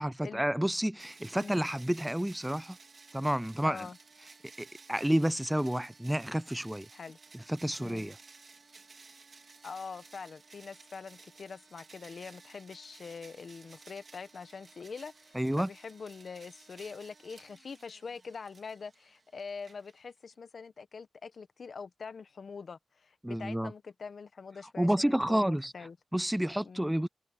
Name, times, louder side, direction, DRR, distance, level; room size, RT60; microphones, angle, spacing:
voice 1, 0.0-2.8 3.1-3.9 4.6-6.9 7.5-8.2 15.3-15.7 23.2-23.7 24.8-25.7 26.1-27.1, right 1 dB, 5° right, 0.3 m, -30 dB
sound 1, 1.0-20.3, right 4 dB, 60° right, 4.1 m, -56 dB
voice 2, 3.6-4.0 6.9-7.2 7.8-8.1 9.6-26.0 26.6-26.9, left 5 dB, 75° left, 1.2 m, -44 dB
wide cardioid pair, 95°, 0 cm